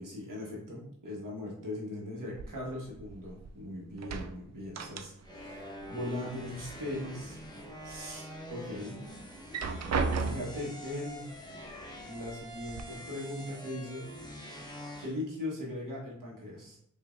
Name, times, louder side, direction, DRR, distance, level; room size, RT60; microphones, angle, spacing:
voice 1, 0.0-7.4 7.8-9.0 9.7-9.8 10.2-11.3 12.0-14.1 15.0-16.8, left 1 dB, 85° right, -3 dB, 1.3 m, -39 dB
sound 1, 2.3-3.6 3.9-5.5 5.8-6.8 7.2-8.0 8.5-8.6 9.3-10.7 11.7-11.8 12.2-12.8, right 4 dB, 55° right, 0.4 m, -35 dB
sound 2, 5.2-15.1, equal, 15° left, 0.8 m, -45 dB
5.1 x 2.6 x 2.5 m, 0.68 s
cardioid pair, 55°, 32 cm